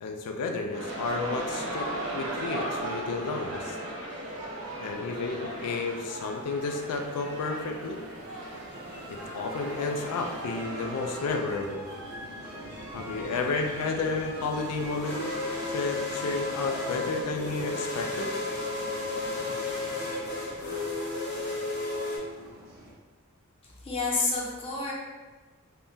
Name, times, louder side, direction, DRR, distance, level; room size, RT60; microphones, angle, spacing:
voice 1, 0.0-1.9 2.1-3.8 4.8-8.0 9.1-11.9 12.9-15.2 15.7-18.3, left 3 dB, 85° left, 4 dB, 0.3 m, -32 dB
sound 1, 0.7-11.3, right 1 dB, 75° right, 0.8 m, -37 dB
sound 2, 4.6-22.9, right 1 dB, 45° right, 0.8 m, -44 dB
sound 3, 12.6-22.2, left 2 dB, 50° left, 0.8 m, -34 dB
voice 2, 23.8-24.9, left 3 dB, 25° left, -4 dB, 0.5 m, -29 dB
3.5 x 2.1 x 2.6 m, 1.4 s
head